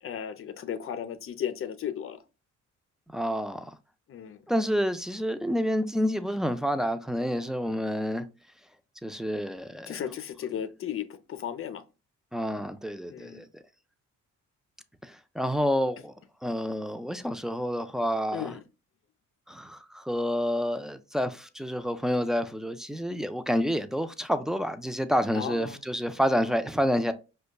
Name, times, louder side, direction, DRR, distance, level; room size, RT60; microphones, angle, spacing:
voice 1, 0.0-2.2 4.1-4.4 9.9-11.8 13.1-13.4 18.3-18.6 25.3-25.8, left 9 dB, 45° left, 0.6 m, -35 dB
voice 2, 3.1-3.7 4.5-8.2 9.0-9.9 12.3-13.5 15.0-16.1 16.4-18.5 19.5-27.1, equal, ahead, 0.3 m, -28 dB
5.0 x 2.2 x 2.2 m
cardioid pair, 90°, 30 cm